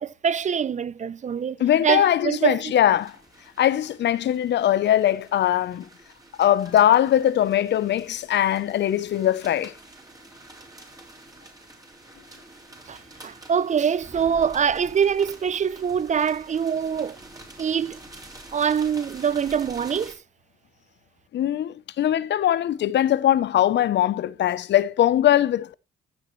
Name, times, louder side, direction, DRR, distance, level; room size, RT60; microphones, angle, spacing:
voice 1, 0.0-2.7 12.9-17.2 17.6-18.0 18.5-20.2, right 7 dB, 35° right, 0.5 m, -24 dB
voice 2, 1.6-3.1 3.6-5.9 6.4-9.7 21.3-25.7, left 11 dB, 60° left, 0.7 m, -21 dB
sound 1, 2.9-20.2, right 2 dB, 20° right, 4.0 m, -47 dB
15.0 x 7.2 x 3.1 m
cardioid pair, 90°, 20 cm